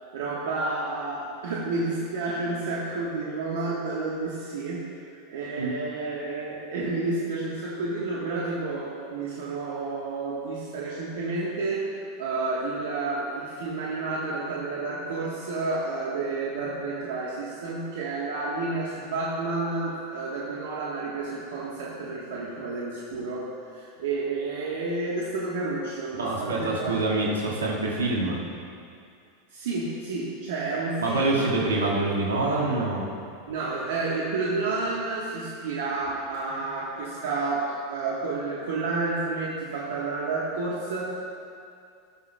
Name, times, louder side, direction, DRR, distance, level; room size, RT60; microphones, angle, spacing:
voice 1, 0.1-4.8 5.3-26.9 29.5-31.7 33.5-41.1, right 3 dB, 70° right, -5 dB, 1.2 m, -30 dB
voice 2, 26.2-28.4 31.0-33.1, right 2 dB, 90° right, -4 dB, 1.7 m, -26 dB
17.5 x 6.0 x 2.2 m, 2.4 s
hypercardioid pair, 95°, 0 cm